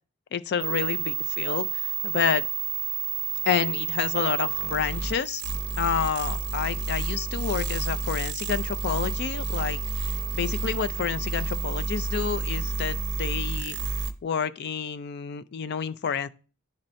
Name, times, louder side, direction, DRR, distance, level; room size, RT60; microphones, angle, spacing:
voice 1, 0.3-2.4 3.4-5.4 5.8-9.8 10.3-13.8 14.2-16.3, left 7 dB, 50° left, 0.3 m, -29 dB
sound 1, 0.6-14.1, right 5 dB, 55° right, 0.6 m, -30 dB
10.5 x 4.2 x 2.6 m
head